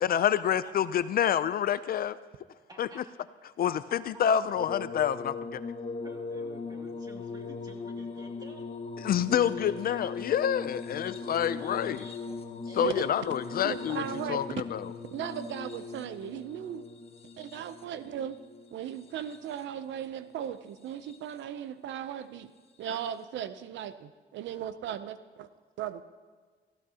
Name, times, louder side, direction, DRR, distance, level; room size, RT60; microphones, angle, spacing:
voice 1, 0.0-2.2 2.8-3.0 3.6-5.6 9.0-12.1 12.7-14.0 14.3-14.9, left 9 dB, 50° left, 14 dB, 0.4 m, -28 dB
voice 2, 2.7-3.0 6.0-8.7 9.2-10.1 10.7-10.8 11.3-12.4 12.7-13.1, right 1 dB, 20° right, 0 dB, 2.4 m, -50 dB
sound 1, 4.6-19.8 20.7-21.4 22.8-23.0, left 4 dB, 30° left, 1.1 m, -40 dB
voice 3, 13.6-14.4 15.1-16.8 17.4-18.4 18.7-22.5 22.8-25.5 25.8-26.0, right 10 dB, 80° right, 12 dB, 0.6 m, -37 dB
17.5 x 15.0 x 2.8 m, 1.5 s
cardioid pair, 115°, 19 cm